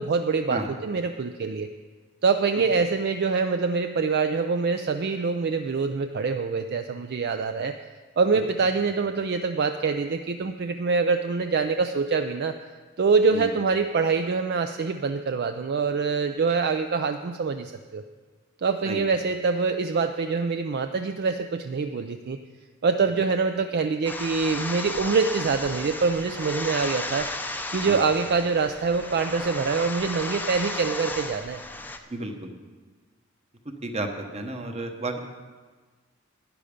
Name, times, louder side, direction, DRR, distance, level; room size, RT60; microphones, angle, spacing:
voice 1, 0.0-1.7 2.2-7.7 8.2-12.5 13.0-18.0 18.6-22.4 22.8-27.3 27.7-31.6, right 4 dB, 50° right, 8 dB, 0.4 m, -25 dB
sound 1, 24.0-32.0, left 2 dB, 10° left, 0.6 m, -34 dB
voice 2, 32.1-32.5 33.8-35.2, right 2 dB, 30° right, 5 dB, 1.0 m, -32 dB
11.5 x 9.9 x 5.1 m, 1.4 s
head